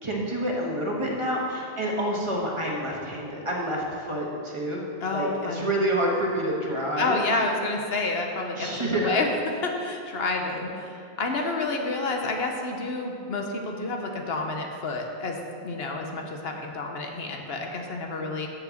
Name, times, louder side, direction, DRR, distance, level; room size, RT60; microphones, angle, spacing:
voice 1, 0.0-4.8 5.1-7.2 8.5-9.3, right 1 dB, 30° right, -3 dB, 1.4 m, -28 dB
voice 2, 5.0-5.7 7.0-9.3 9.6-15.4 15.6-18.5, left 3 dB, 75° left, 2 dB, 1.1 m, -29 dB
7.1 x 6.6 x 7.1 m, 2.5 s
omnidirectional pair, 1.0 m